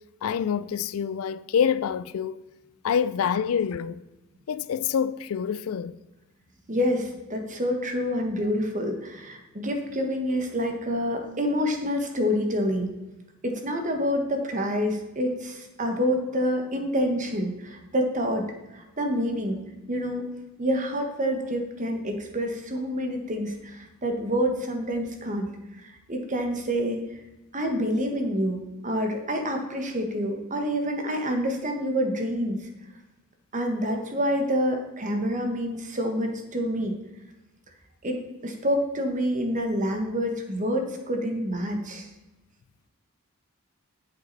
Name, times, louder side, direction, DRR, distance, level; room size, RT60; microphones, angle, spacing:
voice 1, 0.2-2.4 2.8-4.0 4.5-6.0, left 7 dB, 70° left, 0.4 m, -26 dB
voice 2, 6.7-12.9 13.4-18.5 18.7-19.6 19.9-20.2 20.6-25.5 25.8-27.0 27.5-32.6 33.5-36.9 38.0-42.1, equal, 35° right, 1.4 m, -27 dB
9.1 x 7.6 x 4.1 m
head